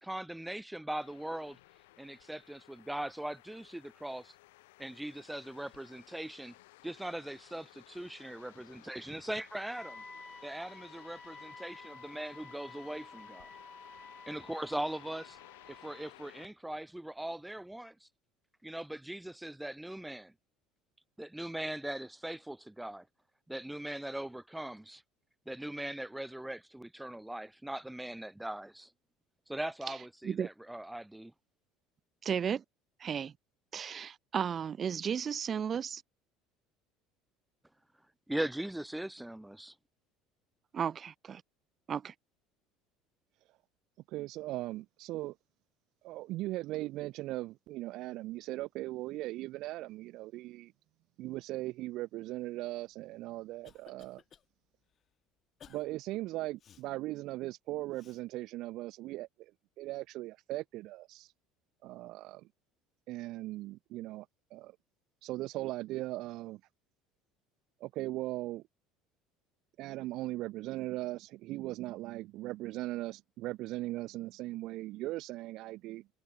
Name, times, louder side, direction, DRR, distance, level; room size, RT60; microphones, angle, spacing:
voice 1, 0.0-1.6 2.0-4.3 4.8-6.5 6.8-10.0 10.4-13.5 14.3-15.4 15.7-18.1 18.6-20.3 21.2-23.1 23.5-25.0 25.5-28.9 29.5-31.3 38.3-39.7, right 1 dB, 5° right, 0.7 m, -40 dB
sound 1, 1.0-16.5, left 20 dB, 70° left, 1.0 m, -58 dB
Wind instrument woodwind instrument, 9.7-16.2, left 3 dB, 15° left, 2.4 m, -52 dB
voice 2, 32.2-32.6 33.0-33.3 33.7-36.0 40.7-41.4 41.9-42.1, right 7 dB, 40° right, 0.8 m, -34 dB
voice 3, 44.1-45.4 46.0-50.7 51.2-54.2 55.7-59.5 59.8-61.3 61.8-62.5 63.1-64.3 64.5-64.7 65.2-66.6 67.8-68.6 69.8-76.1, right 17 dB, 60° right, 0.4 m, -39 dB
Cough, 53.0-54.5 54.9-55.0 55.6-55.9 56.6-56.9 57.9-58.2, left 9 dB, 45° left, 3.6 m, -58 dB
hypercardioid pair, 65°, 0 cm